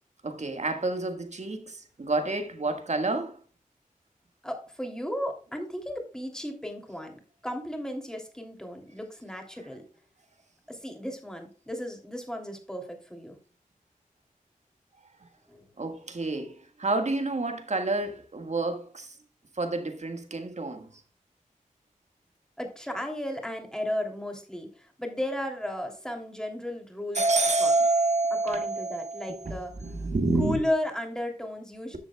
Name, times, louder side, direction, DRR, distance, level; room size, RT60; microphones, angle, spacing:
voice 1, 0.2-3.4 15.2-15.3 15.8-19.2 19.5-21.0 27.1-30.6, right 2 dB, 55° right, 1.7 m, -28 dB
voice 2, 4.4-9.8 10.7-13.4 15.5-15.6 22.6-27.2 27.6-27.7 28.4-29.7 30.4-32.0, left 1 dB, 5° left, 3.0 m, -34 dB
13.0 x 7.6 x 2.3 m
wide cardioid pair, 65°, 14 cm